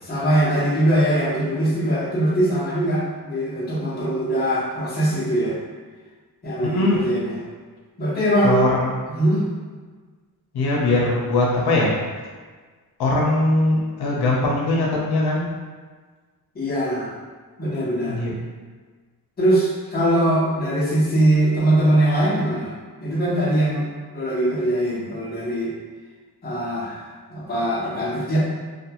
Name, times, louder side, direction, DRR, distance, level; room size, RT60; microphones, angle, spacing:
voice 1, 0.0-5.6 6.4-7.4 8.0-8.6 9.2-9.4 16.5-17.1 17.6-18.2 19.4-22.7 23.0-23.8 24.1-25.7 26.4-28.4, right 1 dB, 25° left, -7 dB, 0.7 m, -21 dB
voice 2, 6.6-7.0 8.4-8.9 10.5-12.0 13.0-15.5 18.1-18.4, left 2 dB, 80° left, -3 dB, 0.7 m, -21 dB
2.5 x 2.2 x 2.8 m, 1.5 s
wide cardioid pair, 155°, 38 cm